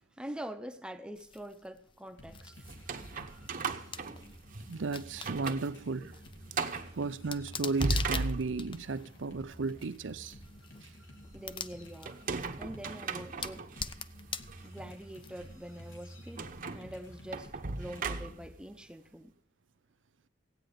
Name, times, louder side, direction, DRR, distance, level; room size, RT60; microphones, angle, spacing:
voice 1, 0.2-2.6 11.3-12.2 12.6-13.7 14.6-16.5 16.7-19.3, right 1 dB, 5° right, 0.7 m, -44 dB
sound 1, 1.1-15.7, left 6 dB, 25° left, 0.5 m, -45 dB
sound 2, 2.2-18.5, equal, 85° left, 2.8 m, -52 dB
sound 3, 2.6-4.7 5.1-5.7 6.0-6.1 6.5-6.9 7.6-8.9 12.1-13.8 14.5-14.6 16.4-18.6, right 3 dB, 50° right, 0.9 m, -36 dB
voice 2, 4.7-6.2 6.9-10.3, right 4 dB, 90° right, 0.6 m, -34 dB
16.0 x 9.0 x 5.2 m
head